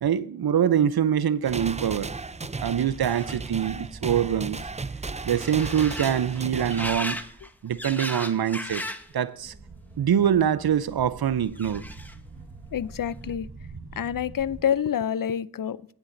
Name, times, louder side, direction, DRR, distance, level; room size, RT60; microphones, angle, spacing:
voice 1, 0.0-2.1 2.6-4.6 5.2-7.2 7.6-8.8 9.1-9.5 10.0-11.8, right 9 dB, 70° right, 0.6 m, -24 dB
sound 1, 1.4-7.0, right 4 dB, 20° right, 0.4 m, -35 dB
sound 2, 2.1-9.1 9.5-10.1 11.0-12.3 12.7-13.3, left 1 dB, 5° left, 1.0 m, -39 dB
sound 3, 9.4-14.6, right 4 dB, 85° right, 1.5 m, -44 dB
voice 2, 12.7-13.5 14.0-15.9, left 9 dB, 55° left, 0.5 m, -27 dB
19.0 x 7.2 x 2.6 m
cardioid pair, 45°, 39 cm